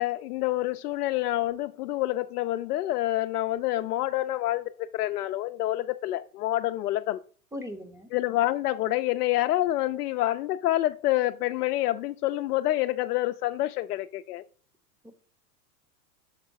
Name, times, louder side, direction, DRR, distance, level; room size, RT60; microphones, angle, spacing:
voice 1, 0.0-7.2 8.1-14.4, left 15 dB, 80° left, 0.5 m, -27 dB
voice 2, 7.5-8.1 15.0-15.1, left 1 dB, 5° right, 0.7 m, -38 dB
6.5 x 3.7 x 4.6 m
hypercardioid pair, 115°, 45 cm